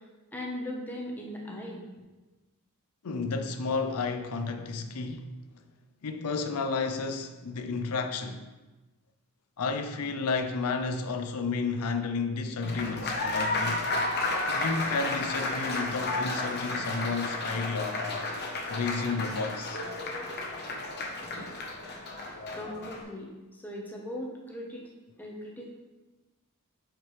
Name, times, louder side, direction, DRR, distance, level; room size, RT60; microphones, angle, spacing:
voice 1, 0.3-1.8 22.5-23.3 23.6-24.9 25.2-25.6, left 1 dB, 10° left, 1.0 m, -38 dB
voice 2, 3.0-5.3 6.0-8.5 9.6-13.9 14.5-18.4 18.7-19.8, left 4 dB, 80° left, 0.5 m, -32 dB
Applause, 12.6-23.0, left 2 dB, 50° left, 0.9 m, -32 dB
7.3 x 4.9 x 3.2 m
head